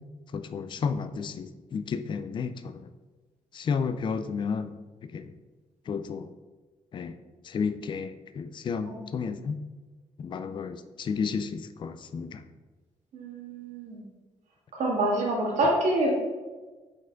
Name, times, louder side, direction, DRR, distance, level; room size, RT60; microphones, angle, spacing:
voice 1, 0.3-2.9 3.5-5.2 5.9-6.3 6.9-7.2 7.4-9.6 10.2-12.4, left 5 dB, 40° left, 11 dB, 0.4 m, -32 dB
voice 2, 13.1-14.0 14.7-16.1, right 1 dB, 75° right, -3 dB, 1.9 m, -26 dB
4.9 x 4.3 x 4.6 m, 1.3 s
cardioid pair, 125°, 12 cm